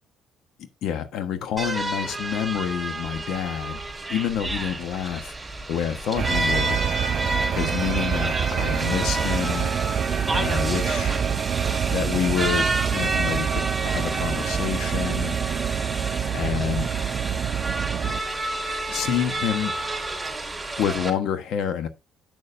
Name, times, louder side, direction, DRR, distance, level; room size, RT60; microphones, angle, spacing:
voice 1, 0.8-3.8 4.1-5.3 5.7-6.8 7.5-9.7 10.3-11.1 11.9-15.4 16.3-16.9 18.9-19.7 20.8-21.9, left 9 dB, 75° left, 1.1 m, -28 dB
sound 1, 1.6-21.1, right 2 dB, 10° right, 3.5 m, -30 dB
sound 2, 6.2-18.2, right 8 dB, 55° right, 0.4 m, -26 dB
8.4 x 6.7 x 2.6 m
cardioid pair, 90°, 0 cm